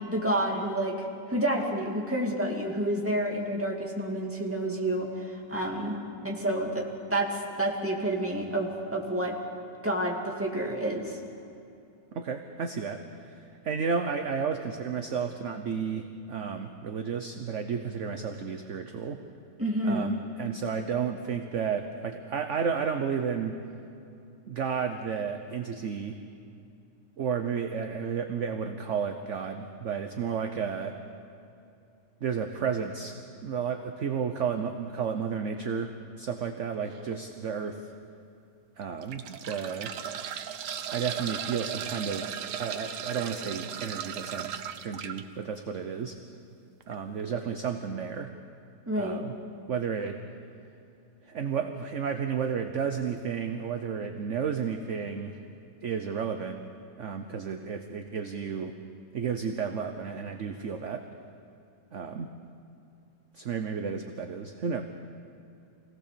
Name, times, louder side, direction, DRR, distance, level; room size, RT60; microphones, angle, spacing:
voice 1, 0.0-6.0 6.2-9.4 9.8-11.2 19.6-20.1 48.9-49.2, right 1 dB, 5° right, -1 dB, 2.4 m, -29 dB
voice 2, 12.1-19.2 19.8-23.6 24.5-26.2 27.2-31.0 32.2-37.9 38.8-39.9 40.9-46.2 46.9-48.3 49.0-49.3 49.7-50.2 51.2-55.4 55.8-56.6 57.0-58.7 59.1-61.1 61.9-62.3 63.3-64.8, right 6 dB, 50° right, 6 dB, 1.0 m, -32 dB
sound 1, 36.9-37.1 37.8-37.9 38.8-45.2 46.8-46.9 47.2-47.3, right 9 dB, 75° right, 1.4 m, -37 dB
25.5 x 17.5 x 6.9 m, 2.6 s
omnidirectional pair, 1.9 m